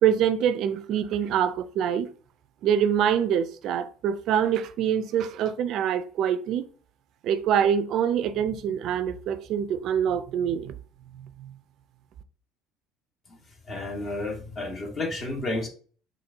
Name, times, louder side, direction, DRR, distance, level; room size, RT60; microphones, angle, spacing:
voice 1, 0.0-2.1 2.6-6.7 7.2-10.7 11.4-11.5, right 9 dB, 60° right, 0.4 m, -25 dB
voice 2, 13.7-15.7, left 2 dB, 40° left, 1.2 m, -31 dB
4.2 x 2.6 x 2.6 m
supercardioid pair, 80°, 0 cm